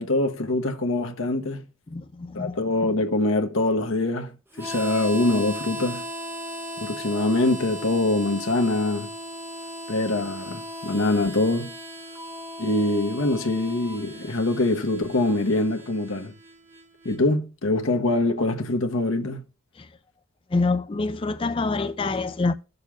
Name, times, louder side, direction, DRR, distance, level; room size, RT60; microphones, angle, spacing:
voice 1, 0.0-1.6 2.3-6.0 6.8-9.1 9.9-11.7 12.6-16.3 17.0-19.4, left 2 dB, 70° left, 1.0 m, -24 dB
voice 2, 1.9-2.6 19.8-19.9 20.5-22.5, left 3 dB, 25° left, 0.4 m, -26 dB
Harmonica, 4.5-17.2, equal, 10° right, 0.7 m, -37 dB
18.0 x 6.7 x 2.3 m
head